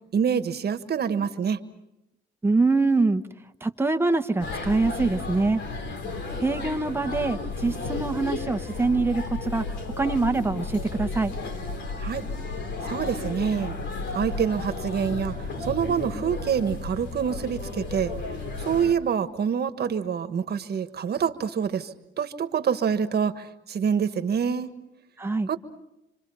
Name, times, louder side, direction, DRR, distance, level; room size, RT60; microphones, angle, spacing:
voice 1, 0.1-1.6 12.0-12.2 12.8-13.8 14.1-18.1 18.6-24.7 25.5-25.6, right 7 dB, 55° right, 10 dB, 1.5 m, -26 dB
voice 2, 2.4-3.2 3.6-5.6 6.4-11.3 25.2-25.5, right 3 dB, 10° right, 6 dB, 1.2 m, -24 dB
sound 1, 4.4-18.9, left 3 dB, 65° left, 3.0 m, -33 dB
27.0 x 26.0 x 5.6 m, 0.92 s
cardioid pair, 90°, 20 cm